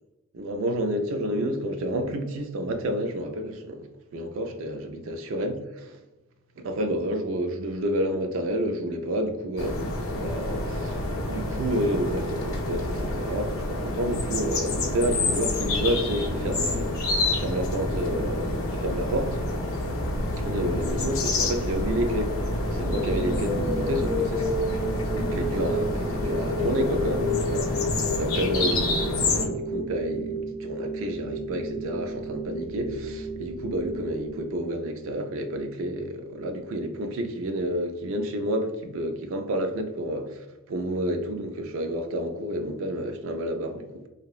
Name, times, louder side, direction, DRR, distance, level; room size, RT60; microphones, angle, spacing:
voice 1, 0.3-3.9 4.1-6.0 6.6-17.0 17.3-19.4 20.4-22.4 22.7-24.0 25.2-44.1, right 1 dB, 70° right, 0.3 m, -30 dB
sound 1, 9.6-29.5, left 2 dB, 70° left, 0.6 m, -28 dB
sound 2, 22.9-34.9, equal, 15° left, 0.8 m, -32 dB
2.7 x 2.0 x 2.3 m
head